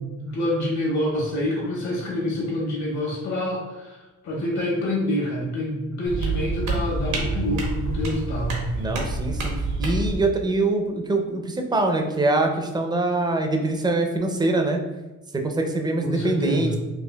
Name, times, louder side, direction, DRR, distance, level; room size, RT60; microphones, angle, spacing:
voice 1, 0.0-4.0 4.2-8.6 16.0-16.7, left 1 dB, 65° left, -3 dB, 1.4 m, -27 dB
sound 1, 6.0-10.2, right 2 dB, 80° right, 1.0 m, -27 dB
voice 2, 8.8-14.8 15.3-16.8, right 2 dB, 15° right, 3 dB, 0.5 m, -24 dB
4.5 x 2.4 x 2.2 m, 1.1 s
cardioid pair, 90°, 30 cm